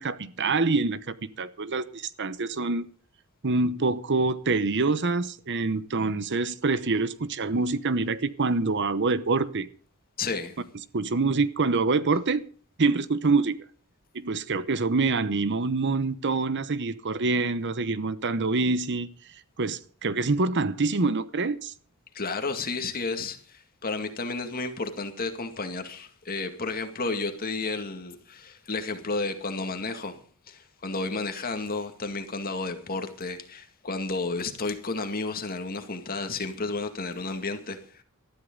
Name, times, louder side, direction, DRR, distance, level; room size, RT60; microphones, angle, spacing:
voice 1, 0.0-2.9 3.4-9.7 10.9-12.4 12.8-13.6 14.1-19.1 19.6-21.7, right 3 dB, 55° right, 0.9 m, -26 dB
voice 2, 10.2-10.7 22.1-30.2 30.5-38.0, left 3 dB, 40° left, 2.2 m, -32 dB
19.0 x 13.5 x 3.9 m
head